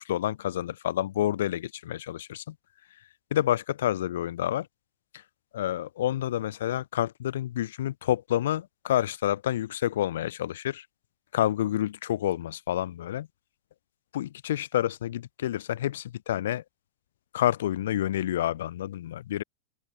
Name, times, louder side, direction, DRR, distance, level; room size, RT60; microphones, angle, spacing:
voice 1, 0.0-2.6 3.3-4.7 5.5-10.9 11.3-13.3 14.1-16.6 17.3-19.4, left 12 dB, 60° left, 0.4 m, -28 dB
open air
figure-of-eight pair, 90°, 0 cm